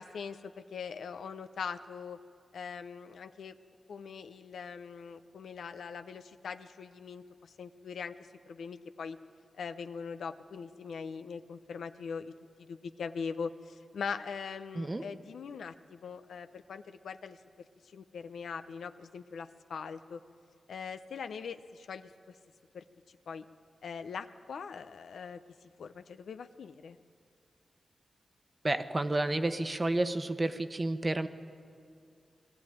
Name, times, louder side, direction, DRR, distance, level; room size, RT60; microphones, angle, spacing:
voice 1, 0.0-2.2 2.5-3.6 3.9-8.1 8.5-9.2 9.6-12.3 12.7-17.7 17.9-20.2 20.7-22.1 22.7-22.8 23.3-23.4 23.8-25.4 25.8-27.0, left 6 dB, 90° left, 10 dB, 0.7 m, -41 dB
voice 2, 28.6-31.3, right 2 dB, 35° right, 10 dB, 1.1 m, -30 dB
20.5 x 14.0 x 9.2 m, 2.3 s
cardioid pair, 55°, 0 cm